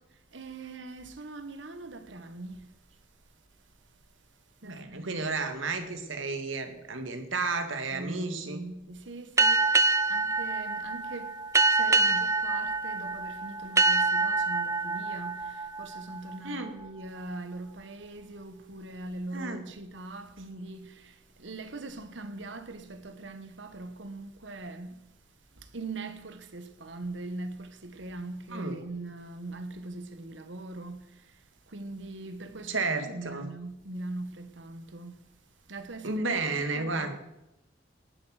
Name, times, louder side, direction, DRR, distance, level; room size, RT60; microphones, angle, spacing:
voice 1, 0.3-2.7 4.6-5.2 7.9-25.0 25.5-31.4 31.7-35.3 35.7-37.2, right 2 dB, 70° right, 1.3 m, -41 dB
voice 2, 4.6-8.6 16.4-16.7 19.3-19.6 28.5-28.8 32.7-33.5 36.0-37.1, right 3 dB, 85° right, 2.0 m, -32 dB
sound 1, 9.4-16.7, right 3 dB, 15° right, 0.4 m, -26 dB
18.5 x 7.5 x 6.4 m
head